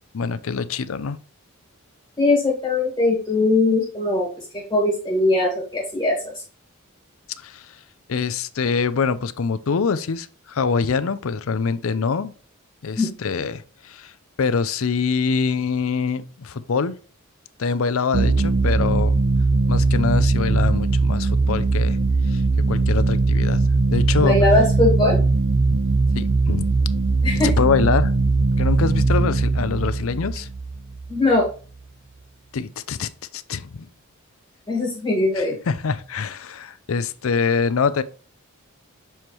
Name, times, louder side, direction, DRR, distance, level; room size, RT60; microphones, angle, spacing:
voice 1, 0.1-1.2 7.4-7.8 8.1-12.3 12.8-14.1 14.4-16.9 17.6-19.1 19.7-22.0 22.3-22.4 22.7-23.6 23.9-24.4 25.7-25.8 26.1-26.7 27.3-28.1 28.6-30.5 32.5-33.9 35.4-38.0, left 5 dB, 75° left, 0.5 m, -24 dB
voice 2, 2.2-6.4 13.0-13.1 24.2-25.2 27.2-27.5 31.1-31.5 34.7-35.6, left 2 dB, 20° left, 1.8 m, -20 dB
sound 1, 18.1-31.4, right 3 dB, 55° right, 0.8 m, -20 dB
7.2 x 4.4 x 3.1 m
head